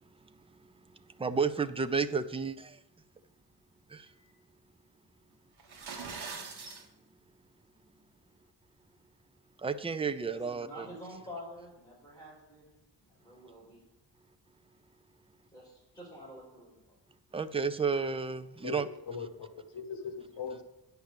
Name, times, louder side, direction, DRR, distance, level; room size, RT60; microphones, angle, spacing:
voice 1, 1.2-2.8 3.9-4.1 9.6-10.9 17.3-18.9, right 5 dB, 15° right, 11 dB, 0.3 m, -31 dB
sound 1, 5.6-6.8, right 5 dB, 60° right, 1.5 m, -42 dB
voice 2, 10.2-12.7 13.2-13.8 15.5-16.8, equal, 10° left, -5 dB, 4.4 m, -48 dB
voice 3, 18.6-20.6, left 5 dB, 65° left, 6 dB, 1.4 m, -40 dB
9.4 x 5.8 x 6.6 m, 0.88 s
wide cardioid pair, 170°, 44 cm